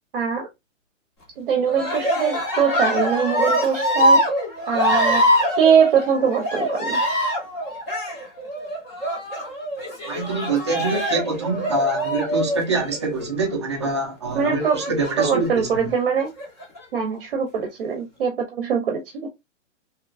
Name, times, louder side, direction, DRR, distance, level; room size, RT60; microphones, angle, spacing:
voice 1, 0.1-0.5 1.4-4.2 4.7-5.3 5.6-7.0 14.3-14.8 15.2-16.3 16.9-19.3, right 7 dB, 45° right, 0.7 m, -22 dB
Cheering, 1.7-13.4 14.6-15.5 16.2-16.8, equal, 20° left, 0.8 m, -24 dB
voice 2, 10.1-15.9, right 2 dB, 25° right, 0.4 m, -25 dB
3.0 x 2.2 x 2.4 m
hypercardioid pair, 165°, 38 cm